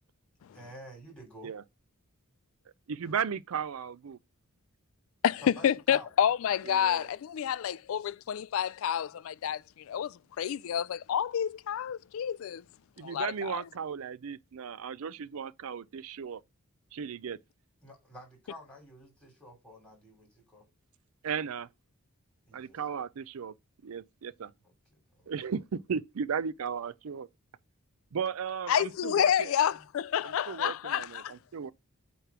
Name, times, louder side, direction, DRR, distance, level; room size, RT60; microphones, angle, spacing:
voice 1, 0.5-1.5 5.4-6.1 17.8-20.6 22.5-22.8 24.6-25.5 29.8-29.9, equal, 5° left, 2.8 m, -50 dB
voice 2, 2.9-4.2 6.7-7.1 13.0-16.4 16.9-17.4 21.2-21.7 22.5-23.5 23.8-24.5 25.3-27.3 28.1-29.5 30.2-31.7, right 7 dB, 70° right, 0.4 m, -35 dB
voice 3, 5.2-9.6 9.9-12.6 13.0-13.6 28.7-31.3, left 9 dB, 65° left, 0.3 m, -29 dB
8.0 x 3.1 x 5.9 m
head